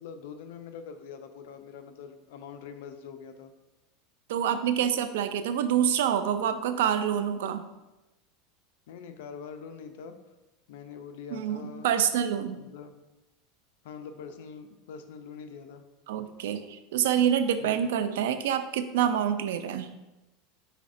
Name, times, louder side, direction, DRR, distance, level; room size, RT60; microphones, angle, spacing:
voice 1, 0.0-3.5 8.9-10.2 10.7-11.9 12.5-12.9 13.8-15.8 17.6-17.9, left 6 dB, 75° left, 8 dB, 0.5 m, -44 dB
voice 2, 4.3-7.7 11.3-12.6 16.1-19.9, right 9 dB, 85° right, 11 dB, 0.3 m, -27 dB
5.0 x 4.1 x 2.5 m, 1.0 s
supercardioid pair, 150°, 0 cm